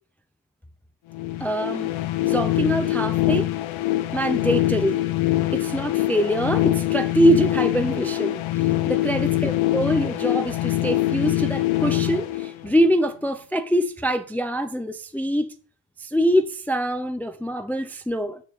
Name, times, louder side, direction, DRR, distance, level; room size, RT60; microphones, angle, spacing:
sound 1, 1.1-13.0, left 15 dB, 85° left, 0.8 m, -24 dB
voice 1, 1.4-1.9 2.2-3.5 4.1-5.0 5.5-15.5 16.0-18.4, equal, 5° left, 0.4 m, -24 dB
8.3 x 6.5 x 3.9 m
cardioid pair, 140°, 46 cm